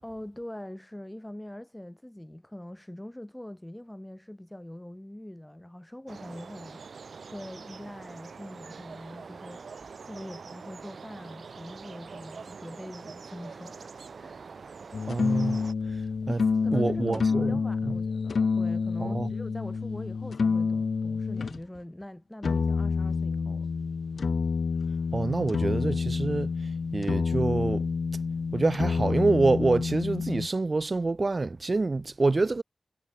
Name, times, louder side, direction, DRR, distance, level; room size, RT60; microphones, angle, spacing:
voice 1, 0.0-14.5 16.6-23.7, left 1 dB, 10° left, 7.6 m, -43 dB
sound 1, 6.1-15.7, right 5 dB, 90° right, 6.7 m, -44 dB
sound 2, 14.9-21.6 22.4-30.5, left 5 dB, 80° left, 1.1 m, -28 dB
voice 2, 15.1-15.6 16.3-16.4 16.7-17.6 17.8-17.9 19.0-19.3 25.1-26.5 26.9-27.9 28.5-32.6, right 3 dB, 40° right, 0.5 m, -26 dB
wide cardioid pair, 110°, 0 cm